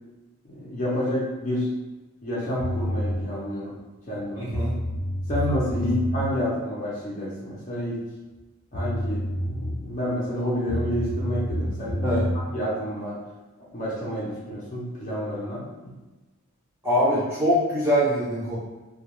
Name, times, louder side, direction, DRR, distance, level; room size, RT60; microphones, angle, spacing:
voice 1, 0.4-1.7 2.2-3.8 4.1-4.5 5.3-8.0 8.7-12.2 12.5-13.2 13.7-15.9, equal, 35° left, -8 dB, 0.6 m, -29 dB
sound 1, 2.6-3.2 4.2-4.3 4.5-6.2 8.4-8.5 8.7-9.9 10.7-12.4, equal, 85° left, 0.6 m, -28 dB
voice 2, 4.4-4.7 5.8-5.9 12.0-12.2 16.8-18.6, equal, 10° right, -10 dB, 0.6 m, -23 dB
2.3 x 2.3 x 2.9 m, 1.1 s
head